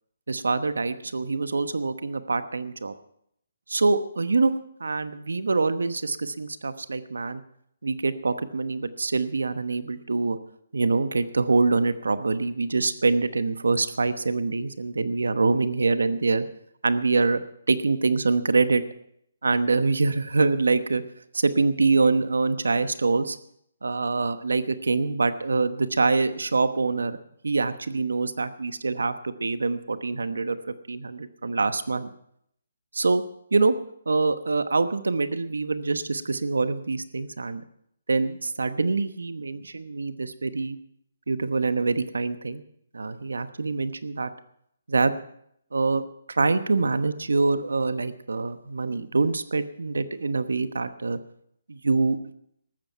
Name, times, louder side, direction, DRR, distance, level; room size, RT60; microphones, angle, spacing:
voice 1, 0.3-2.9 3.7-4.5 4.8-7.4 7.8-10.4 10.7-16.4 16.8-17.4 17.7-18.8 19.4-21.0 21.3-23.4 23.8-27.2 27.4-30.6 30.9-32.1 32.9-33.2 33.5-33.7 34.1-37.6 38.1-40.8 41.3-42.6 42.9-44.3 44.9-45.2 45.7-46.0 46.3-51.2 51.7-52.2, right 3 dB, 90° right, 12 dB, 1.0 m, -25 dB
14.0 x 12.0 x 5.7 m, 0.72 s
hypercardioid pair, 155°, 0 cm